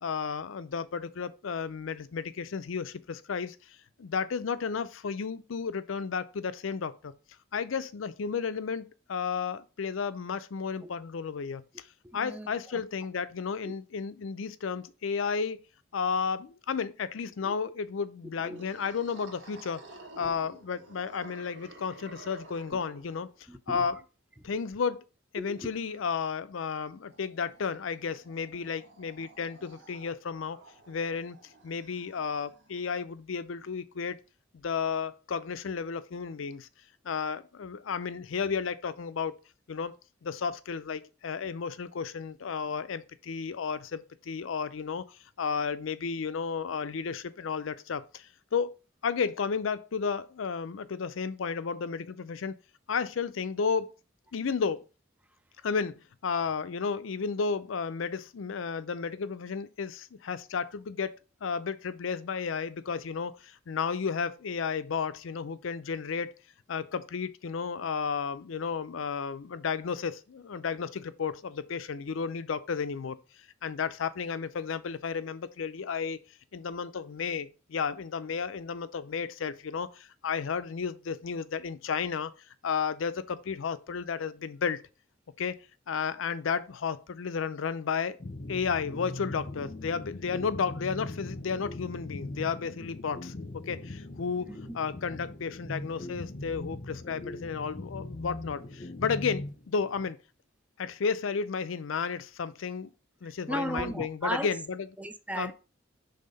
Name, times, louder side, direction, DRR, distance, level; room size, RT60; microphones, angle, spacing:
voice 1, 0.0-3.6 4.0-7.1 7.5-11.6 12.1-15.6 15.9-19.8 20.2-23.3 23.7-24.0 24.4-25.1 25.3-30.6 30.9-31.4 31.6-34.2 34.5-36.7 37.0-39.3 39.7-39.9 40.2-48.7 49.0-52.6 52.9-53.9 54.3-54.8 55.6-66.3 66.7-73.2 73.6-76.2 76.5-82.3 82.6-84.8 85.4-85.6 85.9-88.2 88.5-94.5 94.7-100.2 100.8-102.9 103.2-104.9 105.4-105.5, left 6 dB, 85° left, 0.5 m, -33 dB
voice 2, 12.0-12.8 13.6-13.7 17.4-17.6 18.4-18.7 20.2-20.3 22.7-22.8 23.5-23.9 24.4-24.5 25.4-25.7 94.5-94.6 103.2-104.5 105.0-105.5, right 1 dB, 5° right, 0.4 m, -36 dB
sound 1, 18.5-23.6 25.7-32.8, right 2 dB, 60° right, 1.5 m, -53 dB
sound 2, 88.2-100.1, left 2 dB, 40° left, 0.7 m, -40 dB
5.6 x 3.5 x 5.3 m
head